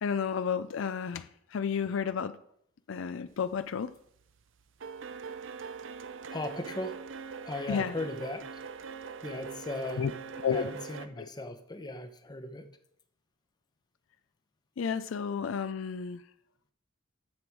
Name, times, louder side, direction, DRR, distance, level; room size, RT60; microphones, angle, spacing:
voice 1, 0.0-2.4 2.9-3.9 7.7-7.9 10.0-10.1 10.4-10.7 11.2-11.3 14.8-16.2, left 6 dB, 70° left, 0.4 m, -32 dB
sound 1, 3.5-3.9 4.2-11.1, right 5 dB, 65° right, 0.6 m, -42 dB
voice 2, 6.3-8.6 9.2-10.1 10.5-12.7, left 2 dB, 20° left, 0.9 m, -38 dB
10.5 x 6.9 x 4.7 m
head